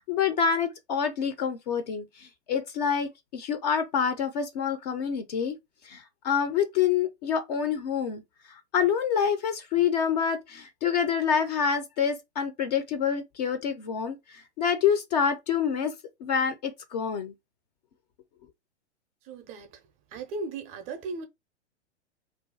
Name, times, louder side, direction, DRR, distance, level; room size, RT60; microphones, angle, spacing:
voice 1, 0.0-5.6 5.8-8.2 8.5-17.3, left 7 dB, 35° left, 0.5 m, -27 dB
voice 2, 19.2-19.8 20.1-21.3, right 3 dB, 20° right, 0.5 m, -36 dB
2.4 x 2.2 x 3.9 m
figure-of-eight pair, 110°, 36 cm